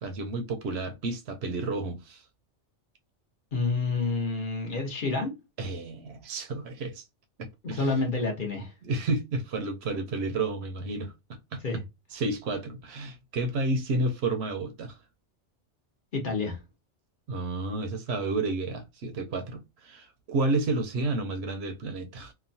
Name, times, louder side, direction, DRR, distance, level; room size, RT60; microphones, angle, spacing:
voice 1, 0.0-2.2 5.6-7.0 7.4-8.0 8.8-11.1 11.5-11.6 12.1-15.0 17.3-22.3, right 2 dB, 70° right, 0.8 m, -31 dB
voice 2, 3.5-5.3 7.7-8.7 11.6-11.8 16.1-16.6, left 3 dB, 50° left, 0.9 m, -28 dB
2.9 x 2.2 x 2.6 m
omnidirectional pair, 1.2 m